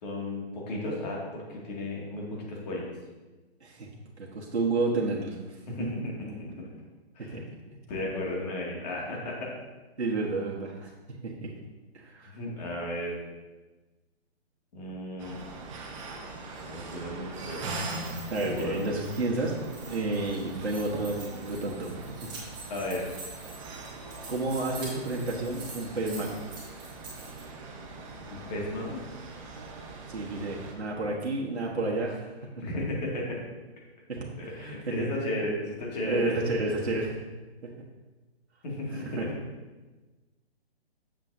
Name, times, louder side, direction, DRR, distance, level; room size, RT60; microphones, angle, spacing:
voice 1, 0.0-2.8 5.7-5.9 7.2-7.4 7.9-9.5 12.3-13.1 14.7-15.4 16.7-17.7 18.3-18.9 22.7-23.0 27.8-27.9 28.3-29.0 32.6-33.4 34.4-36.5 38.6-39.2, left 1 dB, 40° left, -3 dB, 2.2 m, -34 dB
voice 2, 4.2-5.4 5.8-5.9 7.2-7.5 10.0-10.9 11.2-11.5 11.9-12.3 18.3-22.0 24.3-26.4 30.1-32.3 34.1-35.1 36.0-37.2 37.6-37.7 38.9-39.3, right 2 dB, 90° right, -3 dB, 1.4 m, -31 dB
sound 1, 15.2-30.8, right 3 dB, 30° right, 0.9 m, -41 dB
sound 2, 17.8-27.4, right 3 dB, 15° right, 1.7 m, -46 dB
7.6 x 7.4 x 2.7 m, 1.2 s
hypercardioid pair, 150°, 32 cm